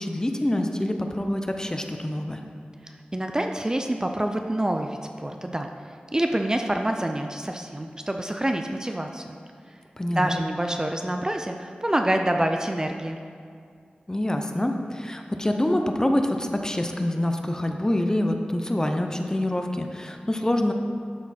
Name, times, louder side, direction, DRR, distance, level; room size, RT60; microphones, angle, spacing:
voice 1, 0.0-2.4 10.0-10.4 14.1-20.7, left 1 dB, 20° left, 4 dB, 0.6 m, -26 dB
voice 2, 2.8-5.7 6.1-9.4 9.7-9.8 10.2-13.2, right 1 dB, 20° right, 4 dB, 0.4 m, -27 dB
11.5 x 4.1 x 4.2 m, 2.2 s
wide cardioid pair, 65°, 3 cm